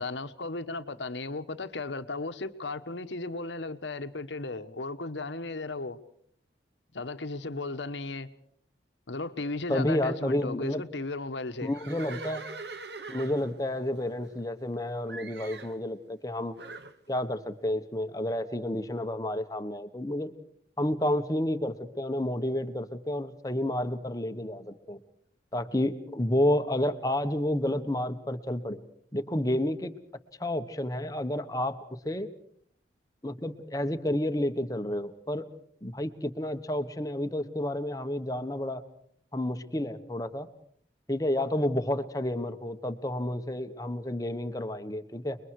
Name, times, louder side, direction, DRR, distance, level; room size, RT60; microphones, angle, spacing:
voice 1, 0.0-6.0 6.9-8.3 9.1-11.7, left 3 dB, 85° left, 10 dB, 1.2 m, -35 dB
voice 2, 9.7-10.8 11.6-12.4 13.1-16.6 17.1-20.3 20.8-25.0 25.5-28.8 29.1-29.9 30.4-32.3 33.2-35.5 35.8-38.8 39.3-40.5 41.1-45.4, left 1 dB, 20° left, 8 dB, 1.3 m, -30 dB
Livestock farm animals working animals, 11.6-14.7 15.1-15.8 16.6-17.0, right 3 dB, 70° right, 1.4 m, -43 dB
29.0 x 22.0 x 4.8 m, 0.63 s
head